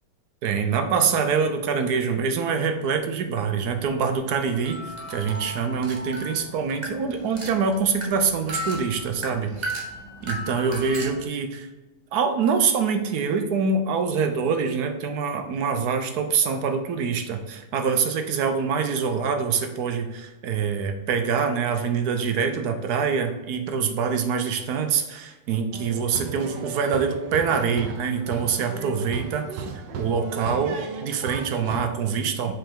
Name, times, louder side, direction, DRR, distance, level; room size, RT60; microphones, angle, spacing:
voice 1, 0.4-4.8 5.1-9.5 10.2-11.7 12.1-29.7 29.9-32.5, right 6 dB, 70° right, 7 dB, 1.2 m, -25 dB
sound 1, 3.7-11.2, equal, 35° right, 0.8 m, -36 dB
sound 2, 25.7-31.8, right 5 dB, 90° right, 1.4 m, -35 dB
5.6 x 5.1 x 3.7 m, 1.1 s
omnidirectional pair, 1.8 m